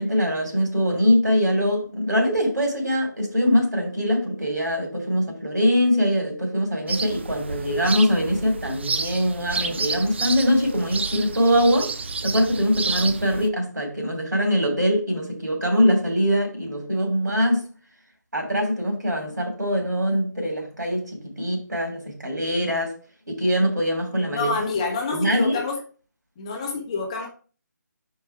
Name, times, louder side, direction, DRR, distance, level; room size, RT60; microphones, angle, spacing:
voice 1, 0.0-11.9 12.2-17.6 18.3-22.9 23.3-24.5 25.1-25.6, equal, 75° right, 2.9 m, -22 dB
sound 1, 6.9-13.5, right 4 dB, 35° right, 0.3 m, -30 dB
voice 2, 24.3-25.8 26.4-27.3, left 4 dB, 20° left, 0.8 m, -27 dB
4.7 x 4.5 x 4.6 m
figure-of-eight pair, 155°, 10 cm